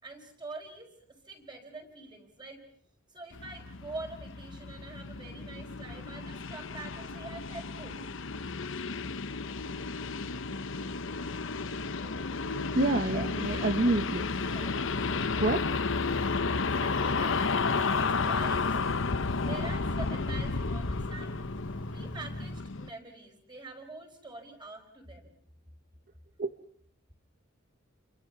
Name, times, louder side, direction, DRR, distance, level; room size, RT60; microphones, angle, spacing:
voice 1, 0.0-0.9 1.2-2.6 3.1-8.0 12.0-12.3 13.0-13.2 13.5-13.9 14.5-14.9 15.3-15.5 16.8-18.7 19.4-21.4 21.9-25.3, right 2 dB, 20° right, 4 dB, 5.0 m, -45 dB
sound 1, 3.3-22.9, left 4 dB, 65° left, 1.0 m, -32 dB
sound 2, 11.8-22.6, equal, 5° right, 2.4 m, -46 dB
voice 2, 12.4-14.3 15.4-15.7 26.4-26.5, right 2 dB, 45° right, 8 dB, 1.1 m, -28 dB
30.0 x 24.0 x 6.1 m, 0.64 s
head